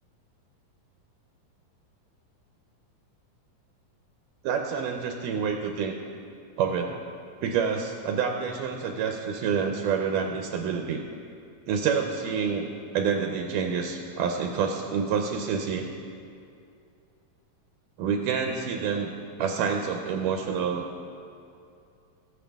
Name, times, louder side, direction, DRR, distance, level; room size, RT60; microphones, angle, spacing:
voice 1, 4.4-6.0 6.6-7.0 7.4-11.0 11.7-12.7 12.9-15.9 18.0-19.1 19.4-20.8, right 6 dB, 80° right, 3 dB, 2.2 m, -27 dB
19.0 x 7.1 x 3.5 m, 2.4 s
omnidirectional pair, 3.9 m